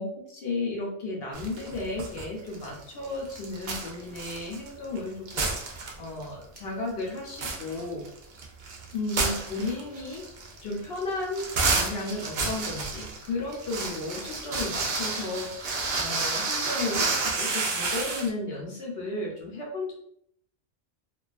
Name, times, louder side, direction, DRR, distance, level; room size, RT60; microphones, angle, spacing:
voice 1, 0.0-8.1 8.9-10.3 10.6-19.9, left 2 dB, 60° left, -2 dB, 0.7 m, -34 dB
sound 1, 1.3-2.2 2.5-5.0 5.2-6.2 6.6-6.7 7.1-18.3, right 3 dB, 85° right, 0.4 m, -30 dB
2.4 x 2.3 x 2.4 m, 0.70 s
omnidirectional pair, 1.4 m